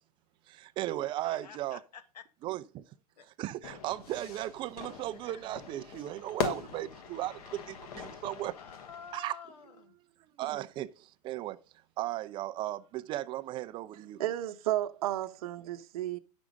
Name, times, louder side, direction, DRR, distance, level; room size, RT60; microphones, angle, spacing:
voice 1, 0.5-1.8 2.4-2.8 3.4-8.6 9.1-9.4 10.4-11.6 12.0-14.2, right 14 dB, 25° right, 0.4 m, -36 dB
voice 2, 1.2-2.2 3.2-3.3 5.2-5.5 6.6-6.7 8.6-10.0, left 7 dB, 85° left, 1.6 m, -50 dB
Fire / Fireworks, 3.6-9.2, left 7 dB, 65° left, 1.4 m, -41 dB
voice 3, 14.2-16.2, right 13 dB, 60° right, 0.9 m, -32 dB
10.5 x 6.2 x 5.2 m
hypercardioid pair, 140°, 21 cm